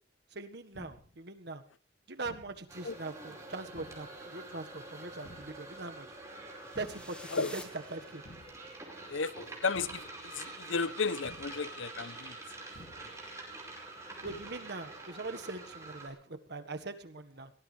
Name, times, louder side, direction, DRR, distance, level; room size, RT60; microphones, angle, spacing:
voice 1, 0.3-1.6 2.1-6.1 6.7-7.6 7.9-8.2 14.2-17.5, right 3 dB, 60° right, 1.6 m, -42 dB
sound 1, 0.7-1.2 2.2-2.7 3.7-4.2 5.2-5.7 6.7-7.2 8.2-8.7 9.7-10.2 11.2-11.7 12.7-13.2 14.2-14.7, left 1 dB, 60° left, 2.6 m, -54 dB
sound 2, 2.7-16.1, right 2 dB, 15° right, 5.0 m, -47 dB
sound 3, 6.5-8.7, left 1 dB, 5° left, 1.7 m, -50 dB
voice 2, 9.1-12.4, left 4 dB, 85° left, 0.8 m, -34 dB
22.5 x 18.5 x 3.4 m
head